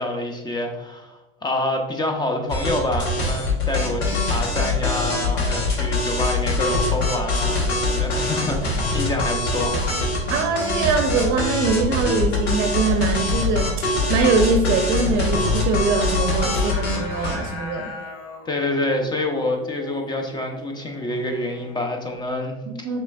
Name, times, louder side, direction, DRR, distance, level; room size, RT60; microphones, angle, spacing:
voice 1, 0.0-9.9 18.4-23.0, left 1 dB, 15° left, 3 dB, 0.6 m, -27 dB
sound 1, 2.5-17.4, left 3 dB, 80° left, 1.4 m, -23 dB
voice 2, 10.3-17.9 22.8-23.0, right 4 dB, 45° right, 4 dB, 0.6 m, -22 dB
Singing, 15.0-22.1, left 3 dB, 50° left, 1.0 m, -39 dB
5.9 x 3.2 x 2.3 m, 1.1 s
supercardioid pair, 115°, 31 cm